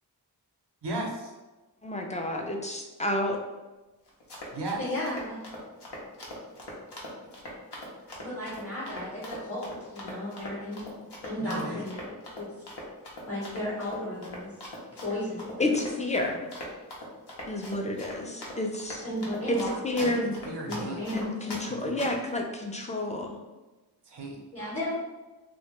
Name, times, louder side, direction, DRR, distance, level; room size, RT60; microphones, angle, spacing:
voice 1, 0.8-1.3 4.5-4.8 11.4-11.8 20.0-21.0 21.8-21.9 24.1-24.4, right 2 dB, 85° right, 0 dB, 0.6 m, -35 dB
voice 2, 1.8-3.4 15.6-16.4 17.5-19.0 19.5-19.6 19.8-20.3 21.1-23.4, left 1 dB, 20° left, 2 dB, 0.3 m, -30 dB
Run, 4.1-21.6 22.0-22.3, equal, 80° left, 0.6 m, -41 dB
voice 3, 4.8-5.4 8.2-10.8 11.2-12.5 13.3-14.5 15.0-15.8 19.0-20.2 20.7-21.6 24.5-24.9, left 1 dB, 35° left, -8 dB, 0.7 m, -34 dB
2.1 x 2.1 x 2.9 m, 1.1 s
wide cardioid pair, 50°, 40 cm